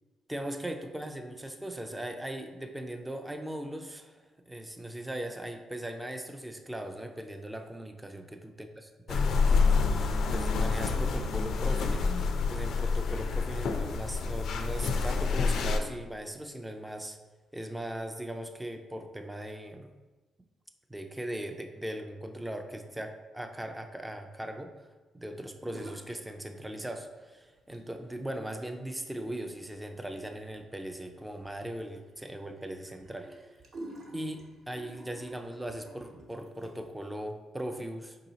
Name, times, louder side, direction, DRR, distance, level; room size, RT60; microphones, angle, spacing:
voice 1, 0.3-8.7 9.1-17.2 17.5-19.9 20.9-24.9 25.1-33.4 34.1-38.2, right 1 dB, 10° right, 6 dB, 0.3 m, -39 dB
flapping Bird, 9.1-15.8, left 4 dB, 65° left, 0.4 m, -27 dB
sound 1, 25.6-26.3 26.5-27.2 27.6-37.0, right 1 dB, 55° right, 0.8 m, -50 dB
4.6 x 2.8 x 3.9 m, 1.2 s
cardioid pair, 110°, 0 cm